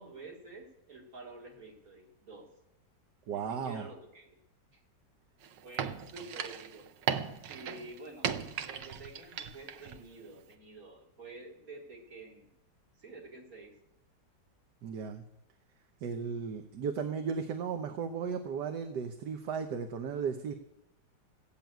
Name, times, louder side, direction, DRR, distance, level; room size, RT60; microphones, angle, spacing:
voice 1, 0.0-2.5 3.3-4.4 5.6-6.9 7.5-8.3 8.7-12.5 13.0-13.7, right 2 dB, 50° right, -1 dB, 3.0 m, -49 dB
voice 2, 3.3-3.9 14.8-15.2 16.0-20.5, right 6 dB, 70° right, 6 dB, 1.5 m, -35 dB
sound 1, 5.4-10.0 10.2-10.3, right 8 dB, 90° right, 1.5 m, -37 dB
15.5 x 7.2 x 9.2 m, 0.86 s
omnidirectional pair, 1.9 m